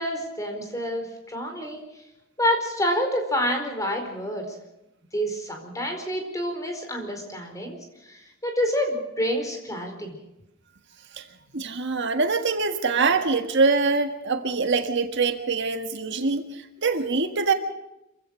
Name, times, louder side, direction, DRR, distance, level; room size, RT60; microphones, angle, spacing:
voice 1, 0.0-1.8 2.4-4.6 5.1-7.8 8.1-10.2, equal, 15° left, 4 dB, 4.6 m, -28 dB
voice 2, 11.5-17.5, right 4 dB, 55° right, 6 dB, 1.7 m, -24 dB
26.5 x 16.5 x 6.5 m, 0.92 s
head